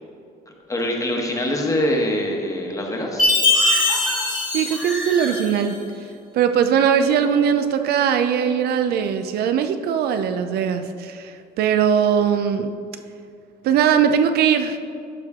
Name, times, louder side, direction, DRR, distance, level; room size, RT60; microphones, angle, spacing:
voice 1, 0.7-3.3, left 1 dB, 20° left, 1 dB, 1.2 m, -24 dB
Chime, 3.2-5.7, left 2 dB, 50° left, 2.0 m, -21 dB
sound 1, 3.5-5.7 6.0-6.1, right 1 dB, 5° right, 1.4 m, -33 dB
voice 2, 4.5-5.8 6.3-12.7 13.6-14.8, right 8 dB, 70° right, 8 dB, 0.5 m, -20 dB
11.5 x 4.5 x 3.6 m, 2.4 s
cardioid pair, 110°, 17 cm